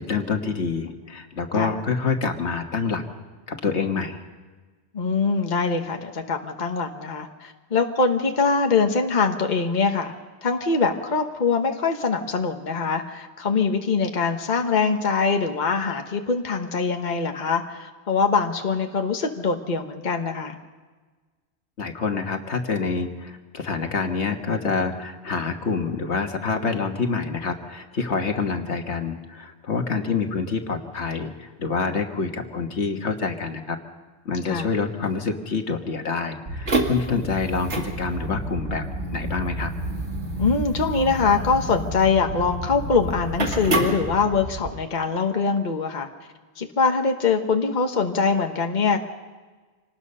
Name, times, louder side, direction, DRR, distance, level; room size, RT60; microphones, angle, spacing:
voice 1, 0.0-3.0 3.5-4.2 21.8-33.8 34.3-38.8 39.1-39.7, left 4 dB, 75° left, 5 dB, 1.8 m, -27 dB
voice 2, 4.9-10.1 10.4-20.6 34.4-34.7 40.4-46.1 46.6-49.0, left 4 dB, 40° left, 4 dB, 1.3 m, -23 dB
sound 1, 36.5-44.7, right 1 dB, 90° right, 2.5 m, -29 dB
26.0 x 19.5 x 5.5 m, 1.4 s
omnidirectional pair, 1.1 m